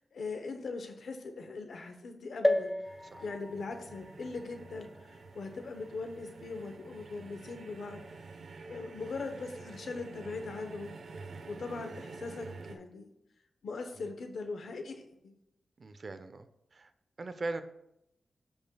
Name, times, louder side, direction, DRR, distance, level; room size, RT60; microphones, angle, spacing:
voice 1, 0.1-2.7 3.2-8.0 8.7-11.0 11.5-13.1 13.6-15.3, left 3 dB, 80° left, 6 dB, 1.0 m, -40 dB
sound 1, 2.4-6.1 6.7-6.8 7.0-7.1, left 1 dB, 15° left, 0.5 m, -34 dB
sound 2, 2.8-12.7, right 3 dB, 85° right, 0.9 m, -48 dB
voice 2, 15.8-16.9 17.2-17.6, right 2 dB, 55° right, 10 dB, 0.7 m, -40 dB
14.0 x 5.3 x 2.3 m, 0.82 s
cardioid pair, 75°, 0 cm